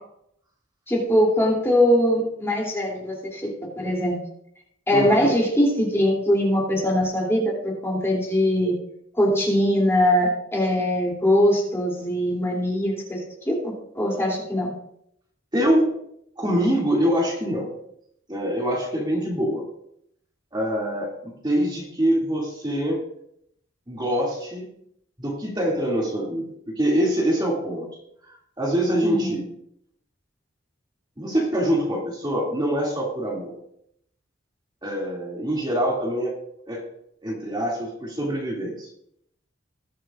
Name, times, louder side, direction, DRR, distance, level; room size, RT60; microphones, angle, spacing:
voice 1, 0.9-3.5 3.8-4.2 4.9-8.7 9.1-13.6 13.9-14.7 29.0-29.4, equal, 15° left, -3 dB, 2.9 m, -22 dB
voice 2, 4.9-5.3 15.5-15.9 16.4-17.7 18.3-19.6 20.5-23.0 23.9-24.7 25.2-26.5 26.8-27.9 28.6-29.4 31.2-33.6 34.8-36.4 36.7-36.8 37.2-38.9, equal, 20° right, -3 dB, 2.5 m, -24 dB
20.5 x 7.4 x 2.5 m, 0.72 s
head